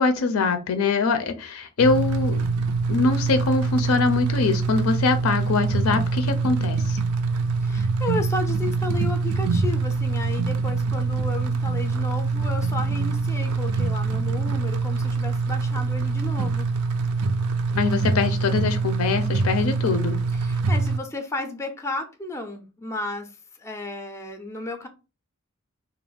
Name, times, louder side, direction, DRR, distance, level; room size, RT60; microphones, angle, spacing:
voice 1, 0.0-2.5 2.9-7.0 17.7-20.2, left 4 dB, 75° left, 9 dB, 0.4 m, -23 dB
sound 1, 1.8-21.0, right 4 dB, 75° right, 0.3 m, -24 dB
voice 2, 7.6-16.7 20.4-24.9, left 2 dB, 15° left, 5 dB, 0.3 m, -33 dB
2.4 x 2.0 x 3.3 m, 0.31 s
head